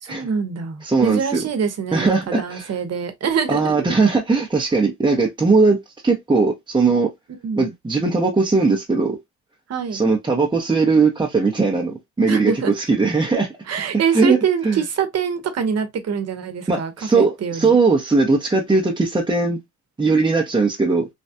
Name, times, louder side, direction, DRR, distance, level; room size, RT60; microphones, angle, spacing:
voice 1, 0.0-3.9 7.4-7.7 9.7-10.0 12.3-12.7 13.7-17.8, right 7 dB, 55° right, 1.0 m, -24 dB
voice 2, 0.8-1.4 1.9-2.7 3.5-5.8 6.0-7.1 7.6-9.2 9.9-13.5 14.1-14.4 14.6-14.8 16.7-19.6 20.0-21.1, right 4 dB, 15° right, 0.8 m, -19 dB
3.3 x 2.3 x 2.7 m
cardioid pair, 90°, 30 cm